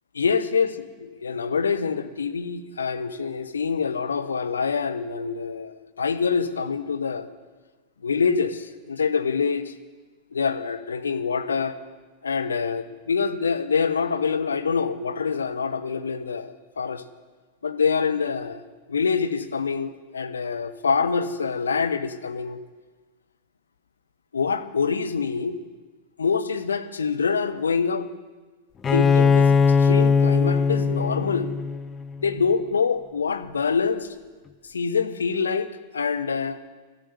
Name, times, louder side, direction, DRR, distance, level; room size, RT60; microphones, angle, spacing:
voice 1, 0.1-0.7 1.0-7.3 8.0-9.7 10.3-11.8 12.2-17.0 17.6-18.6 18.9-22.6 24.3-25.6 26.2-28.1 28.9-31.5 32.2-34.1 34.7-36.6, left 5 dB, 70° left, 9 dB, 0.7 m, -25 dB
Bowed string instrument, 28.8-32.5, left 5 dB, 20° left, 0.4 m, -20 dB
13.0 x 8.0 x 8.8 m, 1.3 s
figure-of-eight pair, 90°, 0 cm